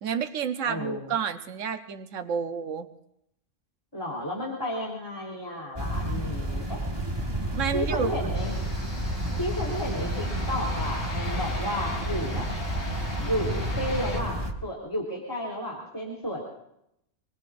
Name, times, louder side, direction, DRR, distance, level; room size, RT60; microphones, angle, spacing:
voice 1, 0.0-2.9 7.5-8.2, right 6 dB, 90° right, 8 dB, 1.2 m, -30 dB
voice 2, 0.6-1.1 3.9-6.8 7.7-8.5 9.4-12.5 13.2-16.4, equal, 20° left, -4 dB, 3.6 m, -32 dB
sound 1, 5.8-14.5, right 1 dB, 20° right, 1.3 m, -31 dB
sound 2, 8.3-14.2, left 1 dB, 50° left, 3.8 m, -37 dB
26.5 x 21.5 x 2.5 m, 0.78 s
omnidirectional pair, 1.3 m